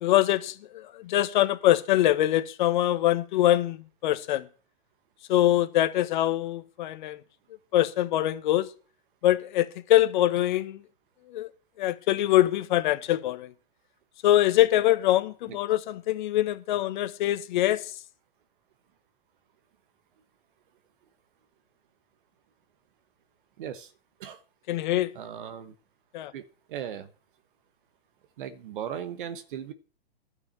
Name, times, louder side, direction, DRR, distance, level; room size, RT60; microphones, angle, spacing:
voice 1, 0.0-4.5 5.3-7.2 7.7-8.7 9.2-10.8 11.3-11.5 11.8-13.5 14.2-17.9 24.7-25.1 26.1-26.3, left 14 dB, 50° left, 1.3 m, -24 dB
voice 2, 23.6-23.9 24.2-24.4 25.1-25.7 26.3-26.4 26.7-27.1 28.4-29.7, right 9 dB, 55° right, 1.4 m, -37 dB
12.0 x 6.1 x 7.6 m
hypercardioid pair, 145°, 31 cm